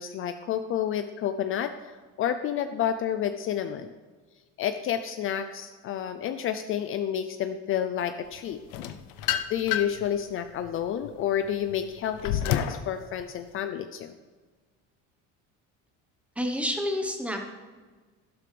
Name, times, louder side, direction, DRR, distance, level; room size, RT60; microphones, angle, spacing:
voice 1, 0.0-1.7 2.2-3.9 4.6-8.6 9.5-14.1, left 9 dB, 45° left, 9 dB, 0.5 m, -30 dB
sound 1, 8.7-10.1 10.6-12.9, left 10 dB, 80° left, 0.7 m, -29 dB
voice 2, 16.4-17.4, equal, 5° right, 3 dB, 1.1 m, -29 dB
12.0 x 11.5 x 3.4 m, 1.4 s
cardioid pair, 140°, 31 cm